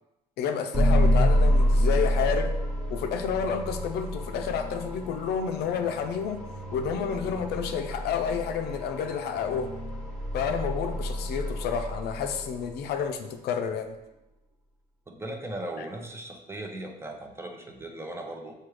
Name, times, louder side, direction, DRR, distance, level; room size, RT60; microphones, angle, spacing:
voice 1, 0.4-2.5 2.9-6.4 6.7-9.7 10.3-13.9, left 7 dB, 70° left, 6 dB, 0.4 m, -30 dB
sound 1, 0.7-12.9, equal, ahead, 1.1 m, -28 dB
voice 2, 15.1-18.5, right 1 dB, 15° right, 2 dB, 0.5 m, -38 dB
6.0 x 2.3 x 3.2 m, 0.94 s
cardioid pair, 110°, 17 cm